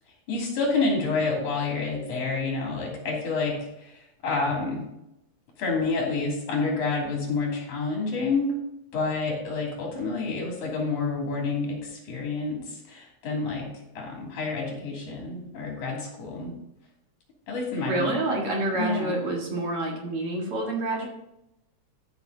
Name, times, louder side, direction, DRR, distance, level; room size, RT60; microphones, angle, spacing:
voice 1, 0.3-3.9 4.2-4.8 5.6-8.5 8.9-13.7 13.9-16.5 17.5-18.1 18.7-19.2, left 3 dB, 85° left, -1 dB, 4.3 m, -28 dB
voice 2, 17.8-21.1, right 2 dB, 50° right, -1 dB, 2.5 m, -28 dB
13.0 x 6.1 x 4.0 m, 0.85 s
omnidirectional pair, 3.4 m